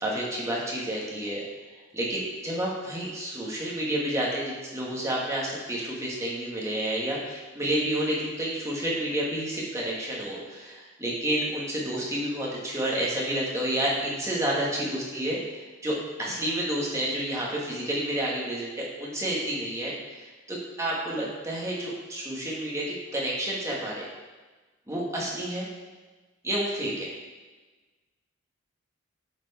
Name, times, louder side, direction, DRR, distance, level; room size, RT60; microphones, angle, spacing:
voice 1, 0.0-1.4 1.9-22.9 23.1-24.0 24.9-25.7 26.4-27.1, right 1 dB, 15° right, -5 dB, 1.7 m, -30 dB
10.0 x 4.6 x 4.2 m, 1.3 s
head